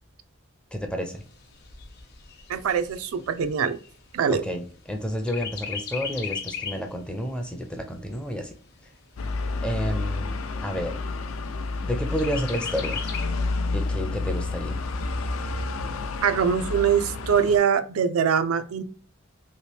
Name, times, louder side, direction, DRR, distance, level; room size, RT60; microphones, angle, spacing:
voice 1, 0.7-1.2 4.3-8.5 9.6-11.0 11.8-13.1 13.7-14.8, equal, 5° left, 4 dB, 0.4 m, -30 dB
Chirp tweet, 1.1-4.9 5.3-6.9 7.4-7.5 7.8-8.8 9.4-9.5 9.8-9.9 10.4-10.9 12.2-13.2, left 6 dB, 50° left, 0.7 m, -36 dB
voice 2, 2.5-3.8 4.1-4.4 16.2-18.8, right 7 dB, 80° right, 10 dB, 0.4 m, -23 dB
sound 1, 9.2-17.6, left 3 dB, 75° left, 0.4 m, -30 dB
3.0 x 2.8 x 3.1 m, 0.40 s
head